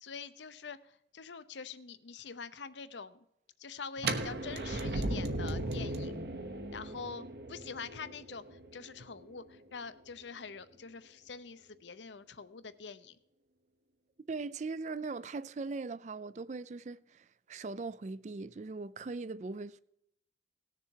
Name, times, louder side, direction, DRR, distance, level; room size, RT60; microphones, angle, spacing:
voice 1, 0.0-3.2 3.6-6.1 6.7-13.2, left 5 dB, 80° left, 0.7 m, -45 dB
sound 1, 4.0-9.8, right 2 dB, 65° right, 1.1 m, -37 dB
voice 2, 14.3-19.8, right 3 dB, 40° right, 0.4 m, -40 dB
18.0 x 6.8 x 4.6 m
head